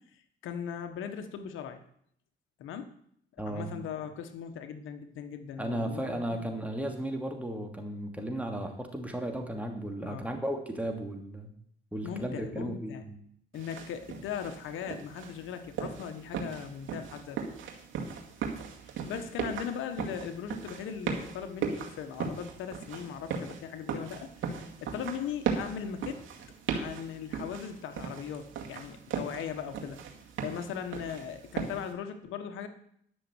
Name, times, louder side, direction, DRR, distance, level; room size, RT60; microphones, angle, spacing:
voice 1, 0.1-1.8 2.6-2.9 3.5-6.4 10.0-10.3 12.0-13.0 13.5-17.4 18.8-24.3 24.8-26.2 26.7-30.0 30.4-32.7, left 8 dB, 85° left, 9 dB, 1.3 m, -39 dB
voice 2, 3.4-3.7 5.6-11.5 11.9-13.2, right 1 dB, 5° right, 3 dB, 2.5 m, -35 dB
sound 1, 13.5-31.9, right 6 dB, 80° right, 2.2 m, -38 dB
11.5 x 6.5 x 8.0 m, 0.67 s
cardioid pair, 90°, 20 cm